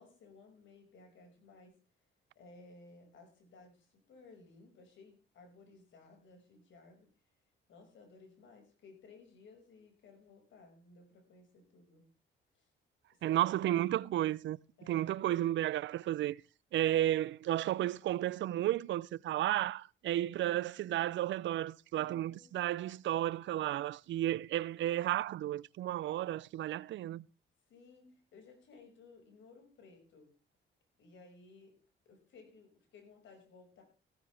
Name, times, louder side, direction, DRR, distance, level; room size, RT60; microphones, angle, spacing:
voice 1, 0.0-1.8 2.4-7.1 7.7-12.1 12.5-12.7 13.1-13.4 14.8-15.1 21.9-22.5 27.7-30.3 31.0-31.8 32.1-33.8, left 3 dB, 70° left, 5.6 m, -58 dB
voice 2, 13.2-14.6 14.9-16.4 16.7-27.3, right 13 dB, 70° right, 0.5 m, -33 dB
15.5 x 13.5 x 3.4 m
cardioid pair, 90°, 20 cm